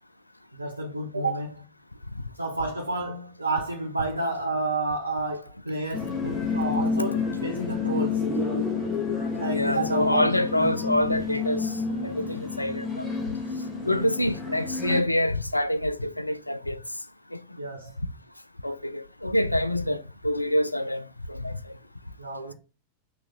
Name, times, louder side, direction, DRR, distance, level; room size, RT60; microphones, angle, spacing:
voice 1, 0.5-1.7 2.4-8.3 9.4-10.7 13.8-14.1 17.6-18.0 19.9-20.0 22.2-22.5, right 2 dB, 80° right, 0.8 m, -30 dB
sound 1, 5.9-15.0, left 5 dB, 10° left, 2.0 m, -29 dB
voice 2, 9.2-11.7 12.0-13.1 13.9-16.8 17.3-17.4 18.6-21.8, left 1 dB, 85° left, 0.4 m, -26 dB
5.8 x 3.5 x 5.5 m
figure-of-eight pair, 90°, 0 cm